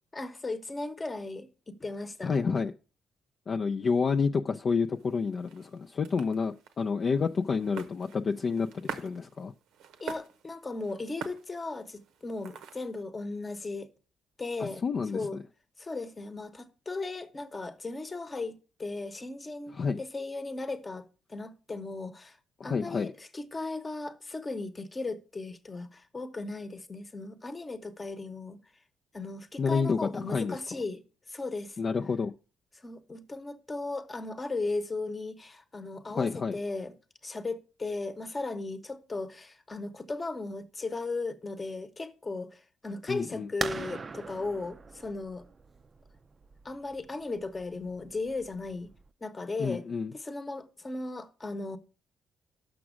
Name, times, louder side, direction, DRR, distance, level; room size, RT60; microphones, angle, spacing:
voice 1, 0.1-2.3 10.0-13.9 14.4-14.8 15.1-15.4 15.8-22.4 22.6-28.6 29.1-31.0 31.3-31.8 32.8-36.9 37.2-45.4 46.6-48.9 49.2-49.8 50.1-51.8, left 3 dB, 25° left, 0.9 m, -36 dB
voice 2, 2.2-2.7 3.5-9.5 14.6-15.2 19.7-20.0 22.6-23.1 29.6-30.6 31.8-32.3 36.2-36.6 43.1-43.5 49.6-50.1, left 5 dB, 45° left, 0.4 m, -29 dB
sound 1, 4.9-13.0, right 7 dB, 90° right, 0.8 m, -46 dB
sound 2, 43.6-49.1, right 4 dB, 35° right, 0.4 m, -41 dB
6.2 x 6.0 x 6.2 m
cardioid pair, 90°, 0 cm